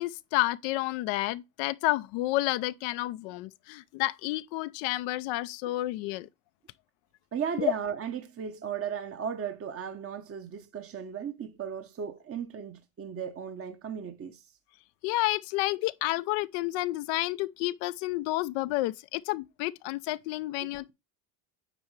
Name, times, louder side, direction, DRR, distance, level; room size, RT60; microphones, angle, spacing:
voice 1, 0.0-6.3 7.6-7.7 15.0-20.9, left 18 dB, 70° left, 0.6 m, -30 dB
voice 2, 7.3-14.6, right 7 dB, 30° right, 0.8 m, -36 dB
9.1 x 4.4 x 3.2 m
supercardioid pair, 85°, 48 cm